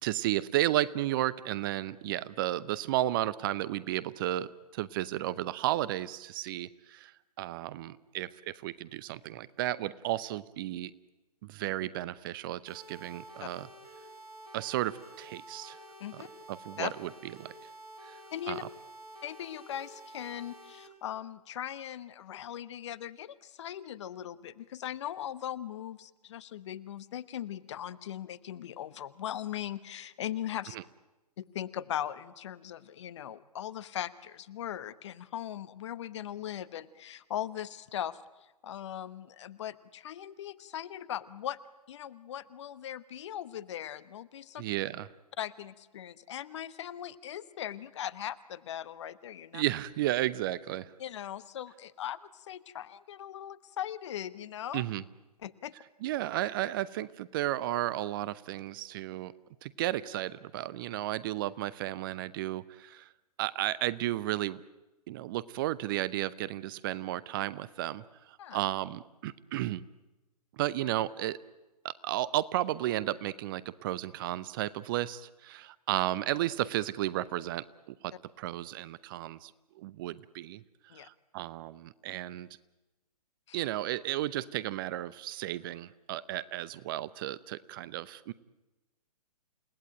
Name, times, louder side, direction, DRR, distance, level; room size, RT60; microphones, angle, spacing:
voice 1, 0.0-7.1 7.4-10.9 11.4-13.7 14.5-15.8 16.1-16.2 16.5-17.5 18.0-18.2 18.5-18.6 30.7-30.8 44.6-45.1 49.5-50.9 54.7-55.0 56.0-59.3 59.6-63.1 63.4-64.6 65.1-69.8 70.5-71.4 71.8-79.5 79.8-80.6 80.9-82.5 83.5-88.3, right 14 dB, 35° right, 18 dB, 0.8 m, -33 dB
sound 1, 12.7-20.9, right 1 dB, 70° right, 4.4 m, -50 dB
voice 2, 18.3-18.6 19.2-30.8 31.4-41.6 41.9-44.6 45.4-49.6 51.0-54.8 55.4-55.7 68.4-68.6 80.9-81.1 83.5-83.6, left 11 dB, 45° left, 16 dB, 1.1 m, -39 dB
29.0 x 18.5 x 9.0 m, 1.1 s
figure-of-eight pair, 120°, 20 cm